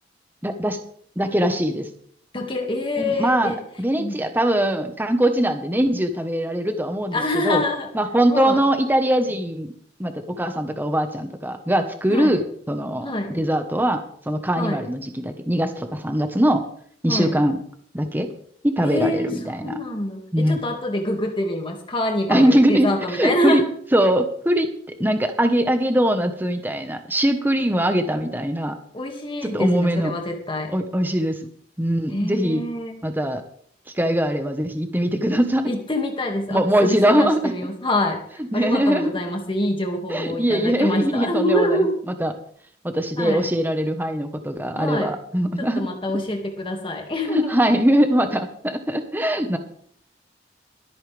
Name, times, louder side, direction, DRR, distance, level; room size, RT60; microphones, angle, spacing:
voice 1, 0.4-0.8 1.2-1.9 3.0-7.6 7.9-9.7 10.0-13.1 13.3-16.6 17.0-17.6 17.9-18.3 18.6-19.8 20.3-20.6 22.3-23.6 23.9-24.7 25.0-28.7 29.4-30.1 30.7-31.4 31.8-32.6 33.0-33.4 34.0-35.7 36.5-37.6 38.5-39.1 40.1-41.9 42.2-42.3 42.8-45.8 47.3-49.6, right 1 dB, 10° right, 7 dB, 1.2 m, -21 dB
voice 2, 2.3-3.6 4.0-4.2 7.1-7.9 8.3-8.6 12.1-12.3 13.0-13.4 14.6-14.8 17.1-17.3 18.8-23.6 28.9-30.7 32.1-33.0 35.6-38.2 38.5-41.9 43.2-43.4 44.8-45.1 45.6-47.6, left 1 dB, 30° left, 2 dB, 2.1 m, -25 dB
24.0 x 8.7 x 3.5 m, 0.63 s
head